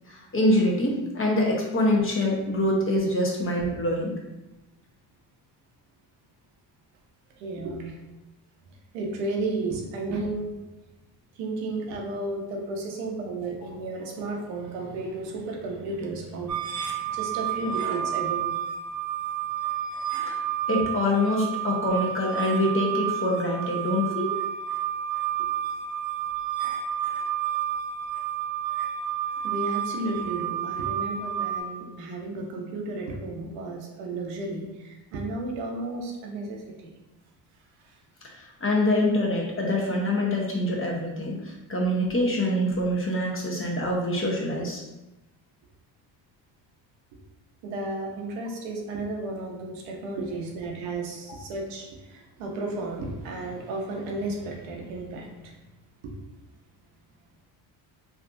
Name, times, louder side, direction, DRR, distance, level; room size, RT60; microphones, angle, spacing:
voice 1, 0.1-4.2 20.3-20.4 20.7-24.3 38.4-44.8, left 1 dB, 25° left, -2 dB, 0.8 m, -25 dB
voice 2, 7.4-8.0 8.9-10.7 11.3-18.5 29.4-36.9 37.8-37.9 47.6-55.6 56.0-56.1, right 2 dB, 90° right, 0 dB, 0.8 m, -33 dB
sound 1, 16.5-31.6, right 10 dB, 40° right, 0.6 m, -30 dB
3.4 x 2.4 x 2.5 m, 1.0 s
supercardioid pair, 80°, 49 cm